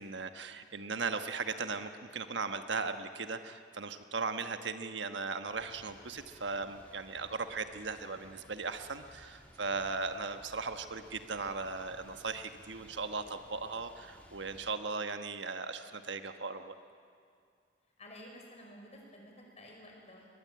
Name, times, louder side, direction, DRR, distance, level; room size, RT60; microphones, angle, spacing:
voice 1, 0.0-16.7, right 4 dB, 85° right, 8 dB, 1.3 m, -38 dB
sound 1, 5.5-14.7, equal, 10° left, 2.9 m, -58 dB
voice 2, 18.0-20.3, left 1 dB, 40° left, 0 dB, 5.6 m, -52 dB
22.5 x 20.5 x 8.7 m, 2.3 s
head